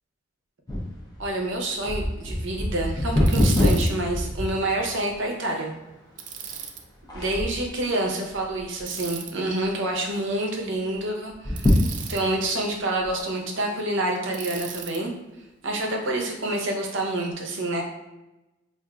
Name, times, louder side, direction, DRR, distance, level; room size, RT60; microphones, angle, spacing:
sound 1, 0.7-5.1 5.7-5.8 6.5-6.8 7.1-7.8 8.3-9.0 9.3-9.4 9.7-9.8 11.3-12.4 13.0-13.1, left 1 dB, 20° left, 0.6 m, -24 dB
voice 1, 1.2-5.7 7.1-11.8 12.1-15.1 15.6-17.8, right 1 dB, 65° right, 1 dB, 0.7 m, -27 dB
Bicycle, 3.3-3.9 6.2-6.8 8.9-9.3 11.6-12.2 14.3-15.0, right 7 dB, 40° right, 0.3 m, -37 dB
4.8 x 2.5 x 2.3 m, 1.0 s
head